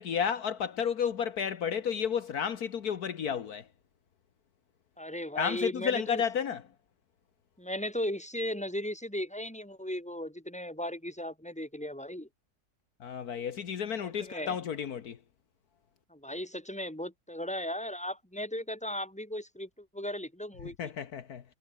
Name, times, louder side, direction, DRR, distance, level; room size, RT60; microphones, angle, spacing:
voice 1, 0.0-3.7 5.3-6.6 13.0-15.2 20.8-21.4, left 7 dB, 70° left, 1.7 m, -32 dB
voice 2, 5.0-6.2 7.6-12.3 14.0-14.6 16.1-20.9, left 1 dB, 5° left, 4.6 m, -36 dB
omnidirectional pair, 1.7 m